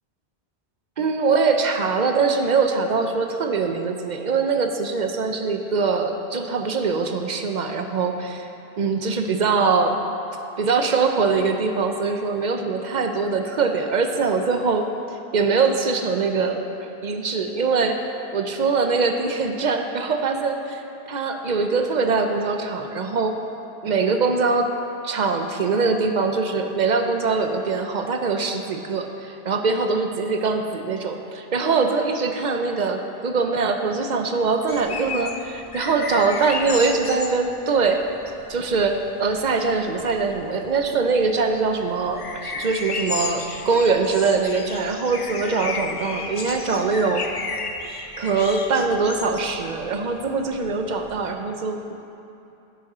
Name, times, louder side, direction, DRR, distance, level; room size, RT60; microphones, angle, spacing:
voice 1, 1.0-8.5 8.8-10.0 10.6-16.6 17.0-18.0 18.3-20.8 21.1-23.3 23.8-24.7 25.0-38.0 38.5-47.2 48.2-51.9, right 4 dB, 50° right, 5 dB, 0.8 m, -22 dB
sound 1, 34.7-51.3, left 4 dB, 40° left, 0.6 m, -34 dB
15.0 x 6.3 x 4.3 m, 2.8 s
omnidirectional pair, 1.0 m